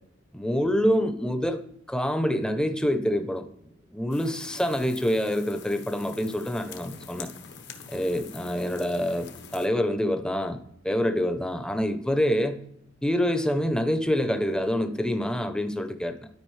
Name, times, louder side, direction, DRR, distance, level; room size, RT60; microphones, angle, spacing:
voice 1, 0.3-3.5 3.9-7.3 7.9-12.6 13.0-16.3, equal, 5° left, 8 dB, 0.6 m, -26 dB
sound 1, 4.1-9.7, left 5 dB, 60° left, 0.9 m, -45 dB
12.0 x 4.9 x 3.2 m, 0.75 s
head